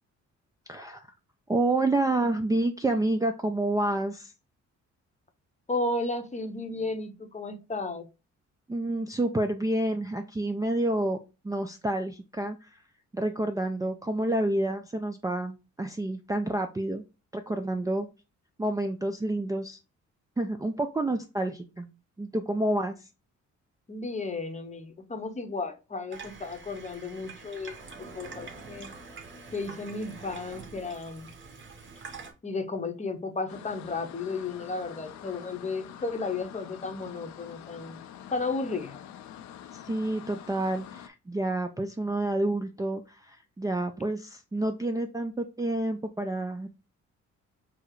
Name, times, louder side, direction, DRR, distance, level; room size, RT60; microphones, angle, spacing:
voice 1, 0.7-1.1 1.5-4.3 8.7-11.2 11.4-12.8 13.1-17.0 17.3-18.1 18.6-19.8 20.4-21.9 22.2-23.1 39.7-46.7, right 1 dB, 10° right, 0.4 m, -29 dB
voice 2, 5.7-8.1 23.9-27.8 28.1-28.9 29.5-31.3 32.4-38.0 38.3-39.0, left 3 dB, 25° left, 0.8 m, -33 dB
Water tap faucet / Sink (filling or washing), 26.1-32.3, right 4 dB, 40° right, 1.1 m, -45 dB
sound 1, 33.5-41.1, left 10 dB, 70° left, 0.5 m, -46 dB
4.7 x 2.0 x 4.5 m
cardioid pair, 90°, 30 cm